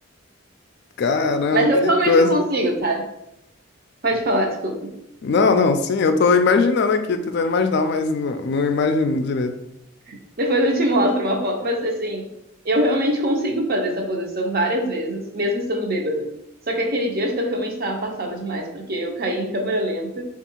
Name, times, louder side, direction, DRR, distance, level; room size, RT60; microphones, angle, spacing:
voice 1, 1.0-2.3 5.2-9.5, left 4 dB, 55° left, 7 dB, 0.4 m, -20 dB
voice 2, 1.5-3.1 4.0-4.9 10.1-12.3 12.6-16.3 16.7-20.2, right 1 dB, 45° right, 2 dB, 0.7 m, -23 dB
3.7 x 2.4 x 4.4 m, 0.83 s
head